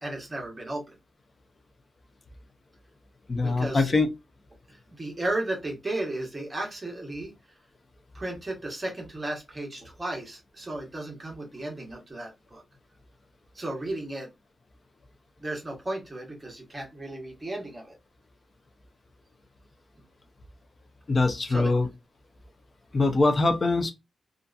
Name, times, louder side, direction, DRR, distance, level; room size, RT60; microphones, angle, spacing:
voice 1, 0.0-1.0 3.4-3.9 4.7-7.3 8.1-12.6 13.5-14.3 15.4-18.0 21.5-21.7, right 2 dB, 15° right, 1.0 m, -34 dB
voice 2, 3.3-4.1 21.1-21.9 22.9-23.9, left 3 dB, 30° left, 0.5 m, -23 dB
2.6 x 2.4 x 2.2 m
wide cardioid pair, 160°, 0 cm